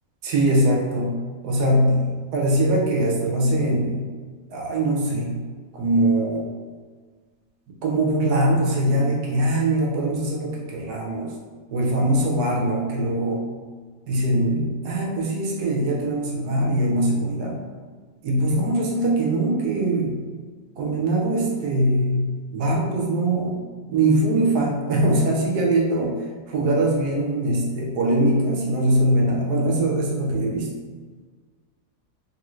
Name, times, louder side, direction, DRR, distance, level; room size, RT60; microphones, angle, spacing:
voice 1, 0.2-4.1 4.5-5.4 5.7-6.5 7.8-11.3 11.7-13.4 14.1-17.6 18.2-20.2 20.8-23.6 23.9-26.2 26.5-30.7, right 1 dB, 70° right, -2 dB, 1.0 m, -22 dB
3.0 x 2.5 x 3.0 m, 1.5 s
omnidirectional pair, 2.0 m